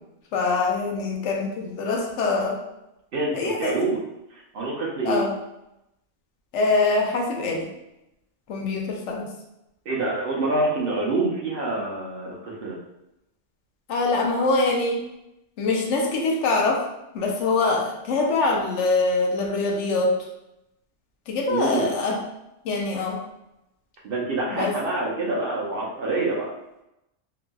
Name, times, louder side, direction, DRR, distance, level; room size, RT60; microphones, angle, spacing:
voice 1, 0.3-2.6 3.3-3.7 5.0-5.3 6.5-7.7 8.5-9.3 13.9-15.0 15.6-16.8 17.1-20.1 21.3-22.2 22.6-23.2 24.5-24.7, left 3 dB, 80° left, 0 dB, 0.9 m, -24 dB
voice 2, 3.1-4.0 4.3-5.2 9.9-12.8 21.5-21.9 24.0-26.5, right 2 dB, 60° right, -3 dB, 0.7 m, -26 dB
2.9 x 2.5 x 2.2 m, 0.88 s
omnidirectional pair, 1.2 m